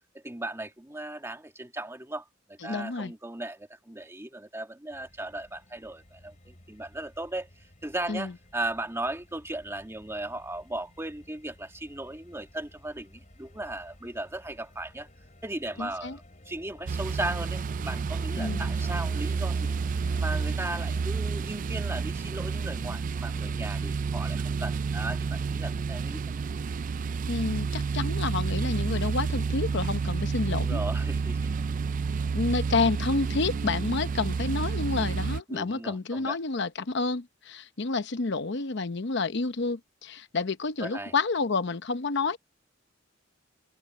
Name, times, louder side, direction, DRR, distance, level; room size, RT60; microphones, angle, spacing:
voice 1, 0.1-7.5 7.8-15.1 15.4-19.8 20.2-26.2 30.5-31.5 35.5-36.4 40.8-41.1, right 1 dB, 15° right, 1.9 m, -37 dB
voice 2, 2.6-3.1 8.1-8.3 15.8-16.2 18.4-18.7 27.3-30.8 32.3-42.4, left 3 dB, 65° left, 0.8 m, -29 dB
sound 1, 4.9-21.1, left 1 dB, 40° left, 3.8 m, -53 dB
sound 2, 16.9-35.4, right 5 dB, 45° right, 0.3 m, -30 dB
head